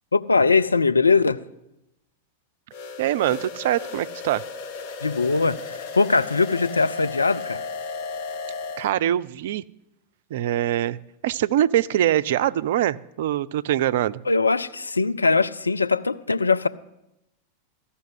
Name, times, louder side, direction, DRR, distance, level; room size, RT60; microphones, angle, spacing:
voice 1, 0.1-1.4 5.0-7.6 14.3-16.7, left 4 dB, 80° left, 0.4 m, -21 dB
sound 1, 2.7-8.9, left 4 dB, 45° left, 1.1 m, -35 dB
voice 2, 3.0-4.4 8.8-9.6 10.3-11.0 11.2-14.2, right 12 dB, 55° right, 0.3 m, -23 dB
14.0 x 5.6 x 7.9 m
figure-of-eight pair, 90°, 0 cm